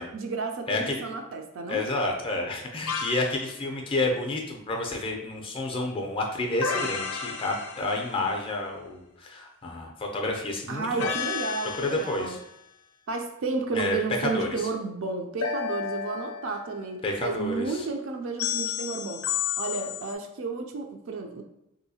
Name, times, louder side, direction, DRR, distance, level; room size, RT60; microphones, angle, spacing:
voice 1, 0.1-1.9 10.7-12.4 13.1-19.2 19.6-21.4, right 4 dB, 60° right, 3 dB, 0.4 m, -32 dB
voice 2, 0.7-1.0 1.7-11.1 11.8-12.4 13.7-14.5 17.0-17.9, left 2 dB, 25° left, 1 dB, 0.4 m, -30 dB
sound 1, 2.9-3.4 6.6-8.3 11.0-12.4 15.4-16.9 18.4-20.1, left 7 dB, 80° left, 0.4 m, -32 dB
3.4 x 2.7 x 2.7 m, 0.82 s
head